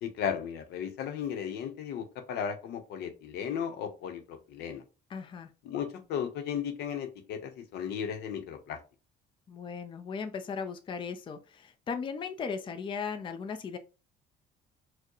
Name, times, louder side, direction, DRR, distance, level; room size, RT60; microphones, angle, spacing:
voice 1, 0.0-4.8 5.6-8.8, left 8 dB, 75° left, 7 dB, 0.8 m, -35 dB
voice 2, 5.1-5.5 9.5-13.8, left 5 dB, 30° left, 7 dB, 0.5 m, -37 dB
4.4 x 2.1 x 3.0 m, 0.32 s
cardioid pair, 110°, 17 cm